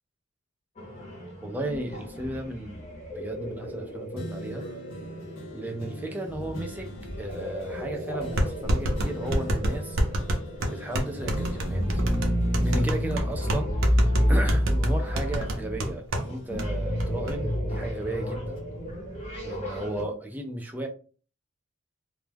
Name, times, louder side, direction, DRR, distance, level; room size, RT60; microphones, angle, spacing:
sound 1, 0.8-20.0, equal, 30° left, 0.7 m, -30 dB
voice 1, 1.4-2.8 3.1-4.7 5.5-6.9 7.2-10.0 10.7-12.0 12.6-18.6 19.4-20.9, right 1 dB, 10° right, 2 dB, 0.3 m, -35 dB
sound 2, 4.1-15.8 16.1-18.0 18.5-18.6, right 1 dB, 70° left, 0.7 m, -42 dB
sound 3, 7.4-7.5 8.4-16.3 16.6-16.7 17.0-17.3, equal, 65° right, 0.5 m, -28 dB
2.2 x 2.1 x 3.2 m, 0.38 s
head